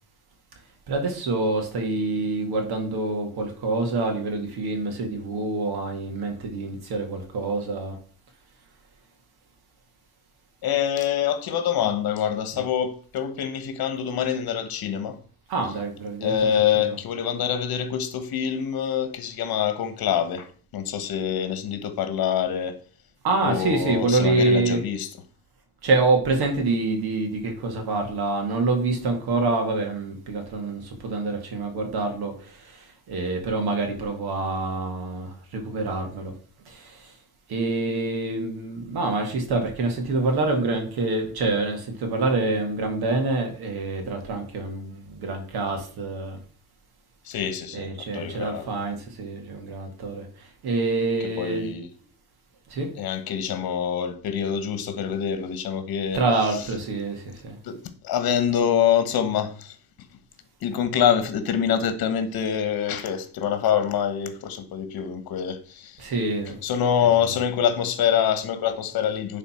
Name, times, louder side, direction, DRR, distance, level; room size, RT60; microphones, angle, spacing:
voice 1, 0.9-8.0 15.5-16.5 16.7-17.0 23.2-24.8 25.8-36.3 36.7-37.1 37.5-46.4 47.7-51.7 52.7-52.9 56.1-57.6 66.0-66.6, right 3 dB, 70° right, 2.0 m, -26 dB
voice 2, 10.6-15.2 16.2-22.8 23.4-25.1 47.2-48.7 51.2-51.9 53.0-56.2 56.5-56.7 57.6-59.8 60.6-66.1 66.6-69.4, left 8 dB, 65° left, 1.3 m, -25 dB
10.0 x 4.1 x 4.3 m
cardioid pair, 150°, 39 cm